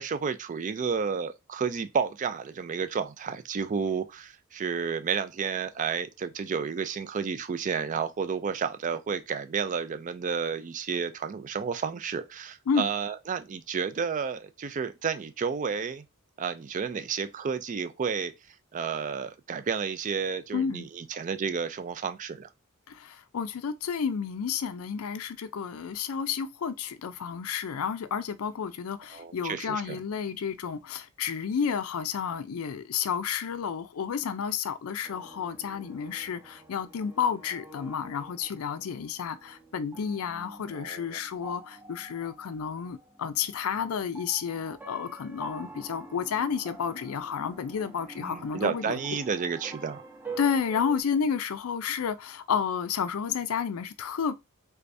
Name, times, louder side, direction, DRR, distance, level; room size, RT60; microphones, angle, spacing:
voice 1, 0.0-16.0 16.4-22.5 29.1-30.0 40.7-41.2 48.2-50.0, right 6 dB, 35° right, 0.3 m, -31 dB
voice 2, 20.5-20.8 22.9-49.0 50.4-54.4, left 7 dB, 70° left, 0.4 m, -31 dB
sound 1, 35.0-51.0, right 3 dB, 10° right, 0.8 m, -47 dB
3.4 x 3.3 x 2.6 m
head